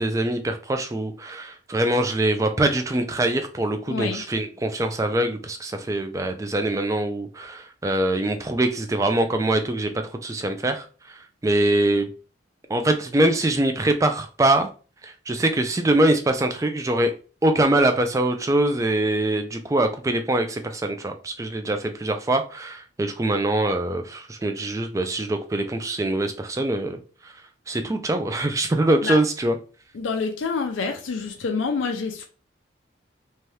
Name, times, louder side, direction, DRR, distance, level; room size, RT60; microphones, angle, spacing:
voice 1, 0.0-9.9 10.2-11.2 11.4-12.1 12.7-14.7 15.0-17.1 17.4-27.0 27.7-29.6, right 1 dB, 15° right, 0.3 m, -23 dB
voice 2, 3.9-4.2 29.0-29.2 29.9-32.2, left 4 dB, 80° left, 0.4 m, -27 dB
2.8 x 2.2 x 3.2 m
head